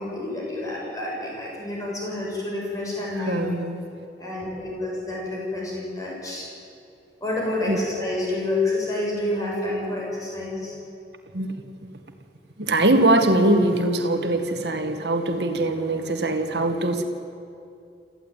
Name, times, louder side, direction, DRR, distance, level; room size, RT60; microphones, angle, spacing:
voice 1, 0.0-3.5 4.2-6.5 7.2-10.7, left 2 dB, 20° left, -3 dB, 6.9 m, -28 dB
voice 2, 3.1-3.8 7.7-7.8 11.3-11.7 12.6-17.0, right 1 dB, 70° right, 6 dB, 2.0 m, -22 dB
27.0 x 15.0 x 9.3 m, 2.5 s
head